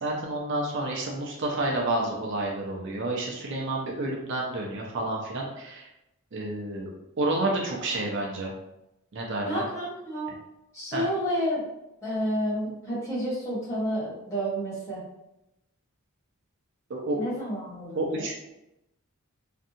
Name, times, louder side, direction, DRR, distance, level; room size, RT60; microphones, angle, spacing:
voice 1, 0.0-5.9 6.3-6.9 7.2-8.5 9.1-9.6 10.9-11.0 16.9-17.2 18.0-18.3, right 2 dB, 55° right, -1 dB, 0.5 m, -29 dB
voice 2, 9.4-10.3 10.7-11.6 12.0-15.0 17.1-18.3, equal, 15° left, -8 dB, 1.0 m, -30 dB
2.5 x 2.3 x 2.7 m, 0.87 s
head